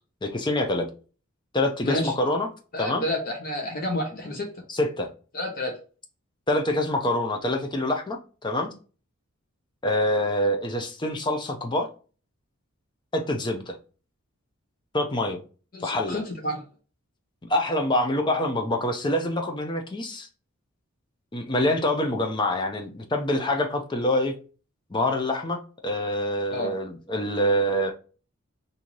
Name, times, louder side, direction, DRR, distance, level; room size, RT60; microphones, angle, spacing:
voice 1, 0.2-0.9 1.5-2.5 2.8-3.0 4.7-5.1 6.5-8.7 9.8-11.9 13.1-13.7 14.9-15.4 15.8-16.2 17.5-20.3 21.3-24.3 24.9-27.9, left 1 dB, 20° left, 0.5 m, -26 dB
voice 2, 1.8-2.1 2.7-4.5 5.3-5.7 15.7-16.6 26.5-26.7, left 1 dB, 45° left, 0.8 m, -29 dB
3.0 x 2.7 x 3.8 m
head